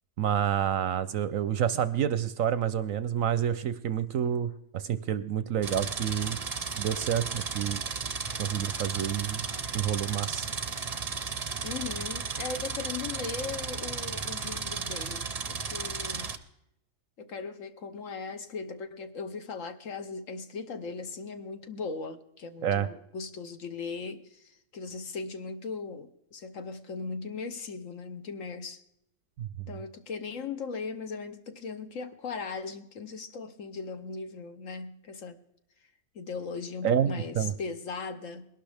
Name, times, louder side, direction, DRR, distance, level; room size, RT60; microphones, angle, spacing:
voice 1, 0.2-6.4 6.8-7.8 8.4-9.4 9.7-10.5 22.6-22.9 29.4-29.5 36.8-37.5, right 9 dB, 65° right, 0.9 m, -28 dB
sound 1, 5.6-16.4, right 5 dB, 35° right, 0.7 m, -34 dB
voice 2, 11.6-16.3 17.2-28.8 29.7-35.4 36.1-38.5, left 4 dB, 55° left, 1.2 m, -38 dB
21.5 x 12.0 x 3.4 m
omnidirectional pair, 1.7 m